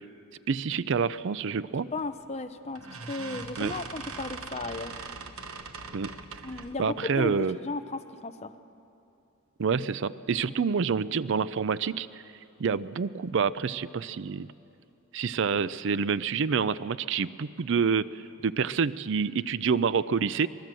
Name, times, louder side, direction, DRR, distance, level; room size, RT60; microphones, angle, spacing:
voice 1, 0.5-1.9 3.6-3.7 5.9-6.1 6.8-7.6 9.6-12.2 12.6-14.5 15.1-20.5, right 5 dB, 60° right, 16 dB, 0.4 m, -27 dB
voice 2, 1.9-2.8 3.1-4.9 6.4-8.5 10.6-10.8, left 3 dB, 30° left, 8 dB, 0.8 m, -35 dB
sound 1, 2.0-2.3 2.8-6.8, right 4 dB, 80° right, 1.3 m, -41 dB
24.0 x 20.5 x 7.7 m, 2.7 s
head